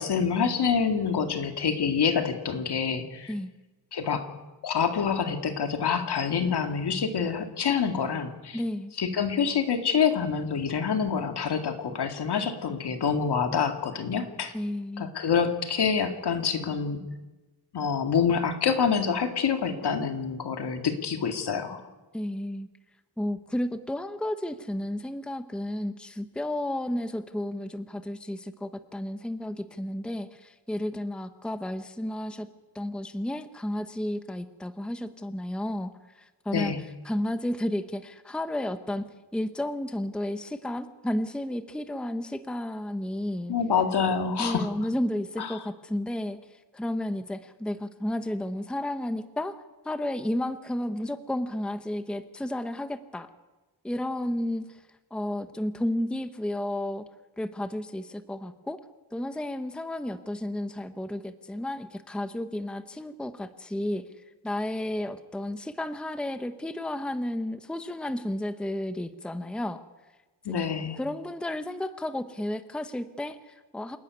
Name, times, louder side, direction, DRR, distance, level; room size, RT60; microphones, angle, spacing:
voice 1, 0.0-3.3 3.9-4.3 4.6-8.6 9.0-14.5 15.0-17.0 17.7-21.8 36.5-36.8 43.5-44.7 45.4-45.6 70.5-71.0, left 6 dB, 70° left, 6 dB, 2.1 m, -26 dB
voice 2, 8.5-8.9 14.5-15.1 22.1-22.7 23.2-32.5 32.7-36.7 37.0-39.0 39.3-43.5 44.4-46.4 46.7-49.6 49.8-53.3 53.8-54.8 55.1-57.0 57.4-58.8 59.1-64.0 64.4-69.8 71.0-74.0, left 1 dB, ahead, 10 dB, 0.8 m, -32 dB
27.5 x 11.5 x 9.5 m, 1.1 s
wide cardioid pair, 175°, 41 cm